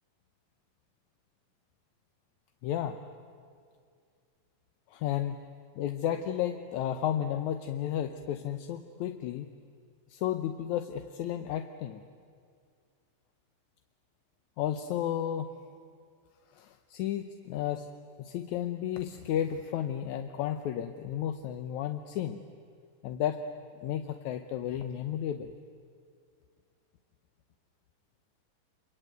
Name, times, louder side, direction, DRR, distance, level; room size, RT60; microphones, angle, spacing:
voice 1, 2.6-3.0 4.9-5.4 5.8-9.5 10.1-12.0 14.6-15.5 16.5-17.9 18.2-22.4 23.0-23.4 23.8-25.5, left 10 dB, 70° left, 8 dB, 2.0 m, -33 dB
26.5 x 23.5 x 9.3 m, 2.2 s
omnidirectional pair, 3.9 m